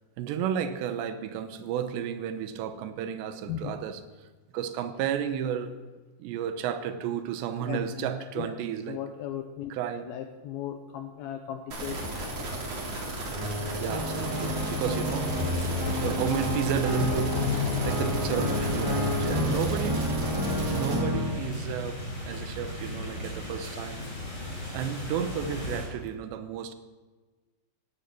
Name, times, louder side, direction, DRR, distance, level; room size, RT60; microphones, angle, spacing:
voice 1, 0.2-4.3 4.5-5.8 6.2-9.0 9.7-10.1 13.8-15.6 16.0-20.1 20.7-24.1 24.7-26.7, right 8 dB, 80° right, 10 dB, 3.2 m, -32 dB
voice 2, 7.6-8.1 8.4-8.5 8.9-9.7 10.1-12.0, left 10 dB, 80° left, 6 dB, 2.2 m, -36 dB
sound 1, 11.7-21.0, right 1 dB, 35° right, 4.1 m, -34 dB
sound 2, 13.3-21.3, left 2 dB, 5° right, 3.6 m, -31 dB
sound 3, 14.1-25.8, left 1 dB, 20° left, 7.6 m, -35 dB
17.5 x 12.5 x 6.2 m, 1.3 s
omnidirectional pair, 5.2 m